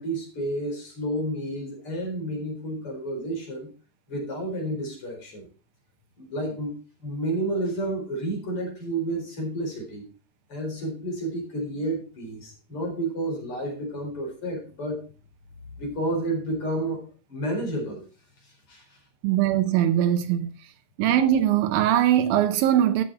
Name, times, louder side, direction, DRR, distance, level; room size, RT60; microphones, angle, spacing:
voice 1, 0.0-3.7 4.1-5.5 6.2-10.1 10.5-15.0 15.8-18.0 18.4-19.0, right 1 dB, 40° left, 5.0 m, -31 dB
voice 2, 19.2-20.5 21.0-23.0, right 11 dB, 90° right, 2.7 m, -21 dB
12.5 x 7.2 x 4.2 m
omnidirectional pair, 4.0 m